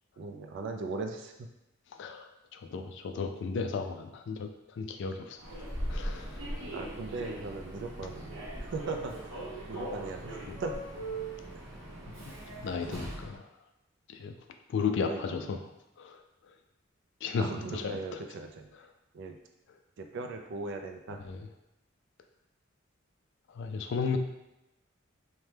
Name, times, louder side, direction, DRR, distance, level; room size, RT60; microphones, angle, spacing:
voice 1, 0.2-1.5 6.7-9.4 9.7-10.8 15.0-15.4 17.4-18.7 19.1-19.4 20.0-21.2, right 3 dB, 60° right, 4 dB, 0.3 m, -38 dB
voice 2, 1.9-5.4 5.9-6.7 10.5-10.6 12.3-12.4 12.6-13.5 14.1-14.4 14.7-15.7 16.0-16.2 17.2-18.2 18.7-18.9 21.2-21.5 23.5-24.2, left 5 dB, 60° left, 6 dB, 0.3 m, -35 dB
Human voice / Subway metro underground, 5.4-13.3, right 1 dB, 80° right, 0.8 m, -39 dB
2.8 x 2.1 x 3.3 m, 0.90 s
head